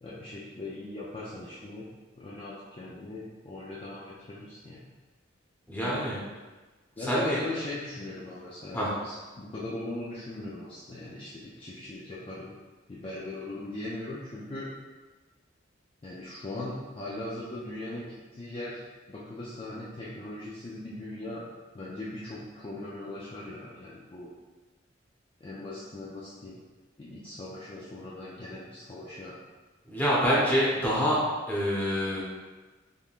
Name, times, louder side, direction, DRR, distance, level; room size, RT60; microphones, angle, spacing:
voice 1, 0.0-1.9 2.1-4.8 7.0-12.6 12.9-14.7 16.0-18.8 19.1-21.4 21.7-24.3 25.4-26.6 27.0-29.4, left 2 dB, 25° left, -6 dB, 0.4 m, -39 dB
voice 2, 5.7-6.2 7.0-7.4 8.7-8.9 29.9-32.2, equal, 10° left, -7 dB, 0.9 m, -26 dB
3.6 x 3.4 x 2.4 m, 1.3 s
head